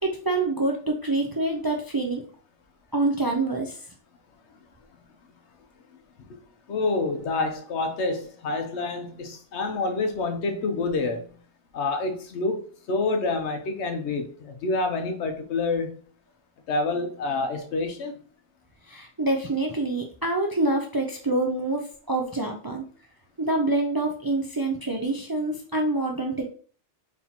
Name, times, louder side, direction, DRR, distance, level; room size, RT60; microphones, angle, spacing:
voice 1, 0.0-2.2 2.9-3.8 18.9-22.8 23.4-26.5, right 2 dB, 35° right, 2 dB, 0.4 m, -26 dB
voice 2, 6.7-11.3 11.7-15.9 16.7-18.1, left 3 dB, 85° left, 5 dB, 1.1 m, -27 dB
4.1 x 3.6 x 2.8 m, 0.43 s
omnidirectional pair, 1.1 m